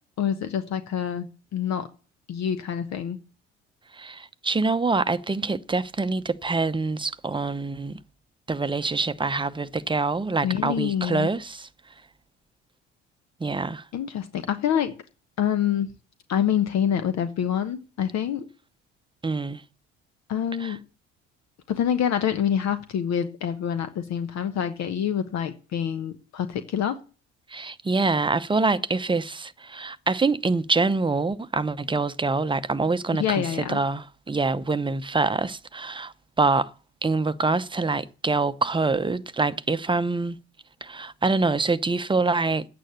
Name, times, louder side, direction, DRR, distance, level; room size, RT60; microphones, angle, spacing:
voice 1, 0.2-1.3 1.5-1.9 2.3-3.2 10.4-11.3 13.9-14.9 15.4-15.9 16.3-18.4 20.3-20.8 21.7-27.0 33.2-33.8, left 9 dB, 50° left, 1.1 m, -26 dB
voice 2, 3.9-8.0 8.5-11.7 13.4-13.8 19.2-19.6 20.6-20.8 27.5-36.7 37.0-40.4 40.8-42.7, right 3 dB, 15° right, 0.8 m, -25 dB
10.5 x 8.9 x 6.9 m
hypercardioid pair, 55°, 34 cm